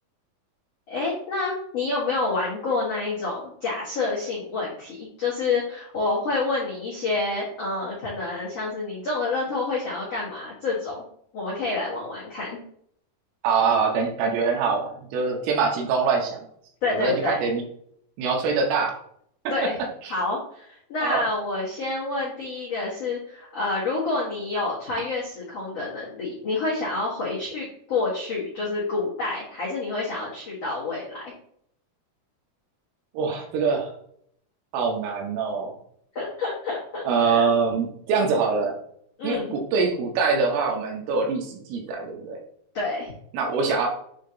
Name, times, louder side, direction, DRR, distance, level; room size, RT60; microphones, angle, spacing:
voice 1, 0.9-11.0 11.3-12.6 16.8-17.4 19.5-19.8 20.1-31.3 36.1-37.5 39.2-39.5 42.7-43.1, left 3 dB, 85° left, -6 dB, 1.4 m, -28 dB
voice 2, 13.4-16.5 16.9-17.6 18.2-18.9 20.0-20.2 21.0-21.2 33.1-33.9 34.7-35.7 37.0-38.7 39.2-42.4 43.3-43.9, right 5 dB, 75° right, 1 dB, 3.4 m, -24 dB
8.4 x 2.9 x 3.8 m, 0.67 s
omnidirectional pair, 6.0 m